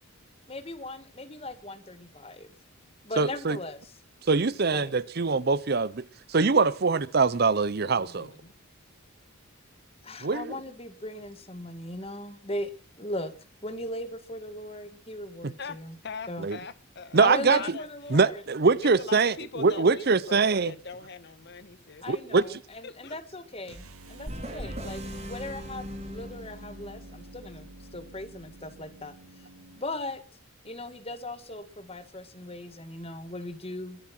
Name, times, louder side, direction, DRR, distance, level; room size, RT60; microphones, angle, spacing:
voice 1, 0.5-2.5 3.0-3.9 4.7-4.9 10.0-12.7 13.0-13.3 13.6-16.0 16.3-16.5 17.2-18.4 22.0-27.7 27.9-29.1 29.8-30.2 30.6-34.0, left 1 dB, 25° left, 1.9 m, -38 dB
voice 2, 3.2-3.6 4.3-6.0 6.3-8.3 10.2-10.6 15.4-15.5 16.4-16.6 17.1-17.6 18.1-20.7 22.1-22.4, right 4 dB, 45° right, 0.6 m, -23 dB
voice 3, 7.9-8.5 15.6-15.8 16.0-18.2 18.8-22.0 22.8-23.1, left 4 dB, 50° left, 1.2 m, -41 dB
sound 1, 23.6-29.9, right 1 dB, 90° right, 2.0 m, -48 dB
sound 2, 24.3-27.1, equal, 30° right, 3.6 m, -39 dB
23.0 x 7.9 x 6.1 m
head